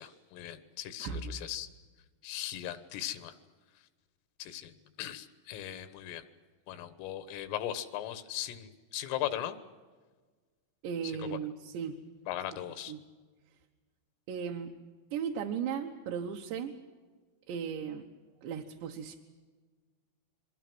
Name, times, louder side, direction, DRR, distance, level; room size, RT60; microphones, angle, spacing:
voice 1, 0.0-1.7 2.2-3.4 4.4-4.7 5.0-6.2 6.7-9.6 11.0-11.4 12.3-12.9, left 12 dB, 90° left, 12 dB, 3.9 m, -38 dB
voice 2, 1.0-1.4 10.8-12.0 12.9-13.0 14.3-14.7 15.1-16.7 17.5-18.0 18.4-19.2, right 7 dB, 70° right, 1 dB, 3.2 m, -36 dB
28.5 x 23.0 x 6.2 m, 1.4 s
omnidirectional pair, 5.7 m